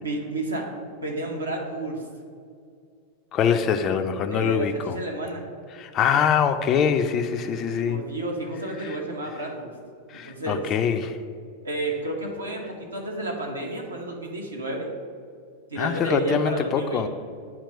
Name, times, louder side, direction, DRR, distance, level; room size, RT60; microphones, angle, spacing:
voice 1, 0.0-0.7 1.0-2.0 4.3-5.5 7.9-9.7 10.1-10.7 11.6-14.9 15.7-17.1, right 2 dB, 80° right, 0 dB, 1.0 m, -31 dB
voice 2, 3.3-5.0 5.7-8.0 8.8-9.0 10.1-11.2 15.8-17.1, left 7 dB, 30° left, 8 dB, 0.3 m, -24 dB
8.3 x 2.9 x 5.3 m, 2.2 s
figure-of-eight pair, 90°, 0 cm